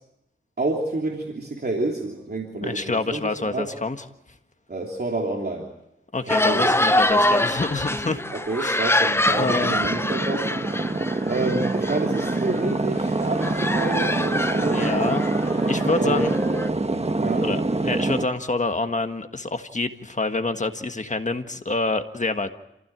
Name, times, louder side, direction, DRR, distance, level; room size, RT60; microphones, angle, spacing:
voice 1, 0.6-3.7 4.7-5.7 6.5-6.8 8.3-10.5 11.3-15.0 16.0-16.3 17.2-17.5, right 2 dB, 50° right, 0 dB, 3.2 m, -28 dB
voice 2, 2.6-4.0 6.1-8.2 8.6-8.8 9.4-9.7 14.5-16.4 17.4-22.5, left 3 dB, 35° left, 7 dB, 1.6 m, -27 dB
sound 1, 6.3-12.7 13.0-16.7, left 1 dB, 10° left, 0.8 m, -25 dB
sound 2, 8.9-18.2, right 2 dB, 30° right, 1.3 m, -25 dB
28.0 x 15.5 x 8.9 m, 0.85 s
wide cardioid pair, 85°, 20 cm